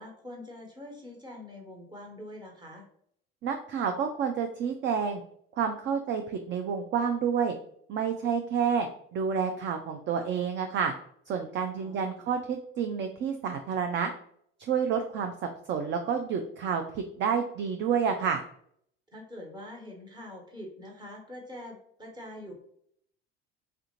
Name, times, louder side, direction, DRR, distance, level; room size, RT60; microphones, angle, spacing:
voice 1, 0.0-2.9 11.7-12.3 19.1-22.5, left 1 dB, 15° right, 0 dB, 1.2 m, -44 dB
voice 2, 3.4-5.2 5.6-7.6 7.9-8.9 9.1-10.9 11.3-14.1 14.6-15.3 15.7-18.4, right 6 dB, 40° right, 5 dB, 0.4 m, -29 dB
3.3 x 2.4 x 2.9 m, 0.66 s
hypercardioid pair, 75°, 29 cm